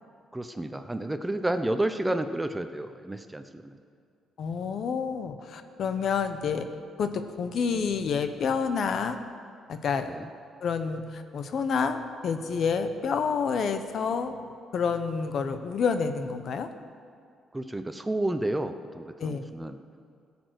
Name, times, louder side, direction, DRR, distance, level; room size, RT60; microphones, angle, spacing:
voice 1, 0.3-3.8 10.1-10.3 17.5-19.8, right 1 dB, 10° right, 9 dB, 0.7 m, -31 dB
voice 2, 4.4-6.7 7.0-9.2 9.7-10.1 10.6-14.5 14.7-16.7 19.2-19.4, left 6 dB, 60° left, 9 dB, 0.9 m, -28 dB
16.5 x 7.0 x 6.3 m, 2.3 s
cardioid pair, 90°, 0 cm